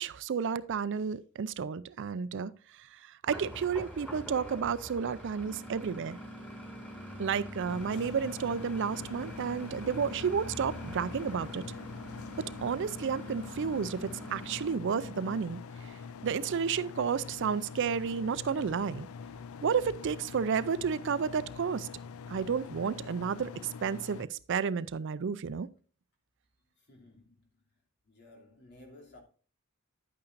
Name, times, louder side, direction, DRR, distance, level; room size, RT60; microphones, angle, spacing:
voice 1, 0.0-6.2 7.2-11.6 12.6-15.6 15.9-19.1 19.6-21.9 22.3-25.7, right 6 dB, 60° right, 0.4 m, -32 dB
sound 1, 3.3-14.7, right 1 dB, 5° left, 4.1 m, -47 dB
sound 2, 5.4-15.5, equal, 20° left, 1.0 m, -47 dB
sound 3, 7.7-24.3, left 5 dB, 80° left, 0.4 m, -45 dB
voice 2, 26.7-27.6 28.0-29.2, left 2 dB, 55° left, 2.7 m, -55 dB
10.5 x 8.7 x 2.5 m
head